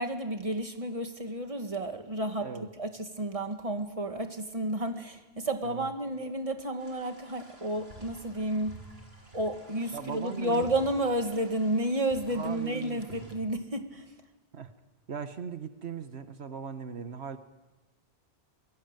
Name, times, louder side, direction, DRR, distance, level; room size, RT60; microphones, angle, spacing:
voice 1, 0.0-8.7 9.3-14.1, right 1 dB, 35° right, 6 dB, 2.1 m, -31 dB
sound 1, 6.8-13.3, right 1 dB, 70° right, 4.5 m, -51 dB
voice 2, 9.9-10.7 12.3-13.0 14.5-14.7 15.1-17.4, right 6 dB, 85° right, 9 dB, 1.5 m, -39 dB
27.0 x 22.5 x 9.1 m, 1.2 s
omnidirectional pair, 1.1 m